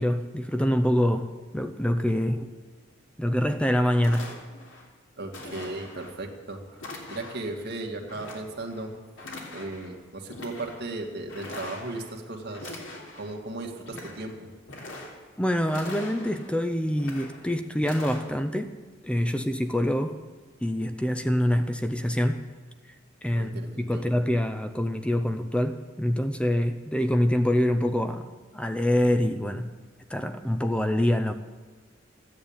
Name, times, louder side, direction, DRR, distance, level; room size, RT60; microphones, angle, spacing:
voice 1, 0.0-2.5 3.2-4.3 15.4-18.7 19.0-20.2 20.6-22.5 22.9-23.0 23.2-28.3 28.5-29.7 30.1-31.3, left 1 dB, 5° left, 8 dB, 0.6 m, -25 dB
sound 1, 3.5-3.6 4.0-4.8 5.3-6.1 6.8-7.5 8.1-8.9 9.2-9.9 10.3-10.8 11.3-12.1 12.5-13.3 13.7-14.3 14.6-15.4 15.7-16.5 16.9-17.5 17.8-18.2, left 2 dB, 70° left, 3.3 m, -42 dB
voice 2, 5.2-6.8 7.1-8.9 9.5-12.8 13.1-14.5 23.3-24.0, right 2 dB, 55° right, 2 dB, 2.1 m, -36 dB
14.0 x 10.5 x 8.8 m, 1.4 s
head